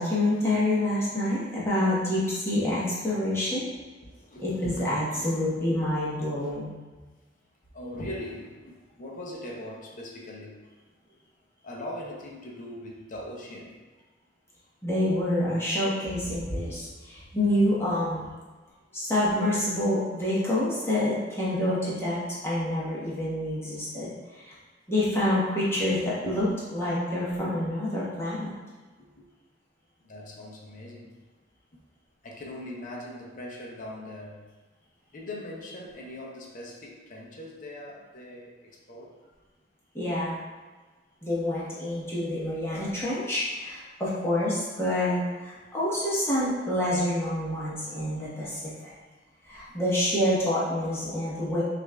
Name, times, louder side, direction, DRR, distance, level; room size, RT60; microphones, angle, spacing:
voice 1, 0.0-3.6 4.4-6.7 14.8-18.3 18.9-24.1 24.4-24.5 24.9-28.5 39.9-40.4 41.2-48.9 49.5-51.6, left 1 dB, 15° left, -9 dB, 1.0 m, -27 dB
voice 2, 4.0-5.3 6.4-6.5 7.7-10.6 11.6-13.8 26.3-26.4 30.0-31.1 32.2-34.5 35.1-39.1, left 1 dB, 50° left, -2 dB, 0.6 m, -40 dB
6.1 x 2.5 x 2.2 m, 1.3 s
head